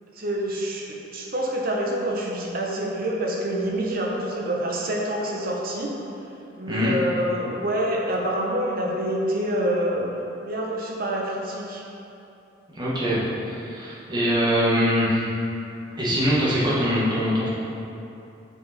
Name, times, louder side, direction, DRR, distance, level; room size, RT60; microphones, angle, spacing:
voice 1, 0.2-5.9 6.6-10.1 10.4-11.8, right 1 dB, 50° right, -2 dB, 1.0 m, -27 dB
voice 2, 12.7-15.2 16.0-17.5, equal, 25° right, -8 dB, 1.5 m, -23 dB
6.9 x 4.9 x 4.2 m, 2.8 s
head